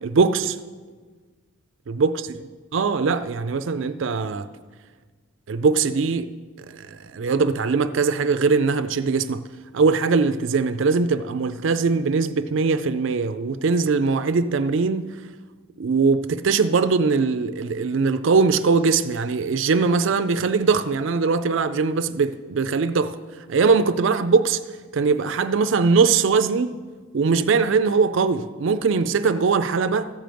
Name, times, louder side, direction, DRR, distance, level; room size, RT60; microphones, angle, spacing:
voice 1, 0.0-0.6 1.9-2.3 2.7-4.5 5.5-6.3 6.7-9.5 9.7-15.2 15.8-23.2 23.5-24.6 24.9-26.8 27.1-30.1, right 4 dB, 65° right, 0.4 m, -21 dB
14.0 x 5.1 x 7.6 m
head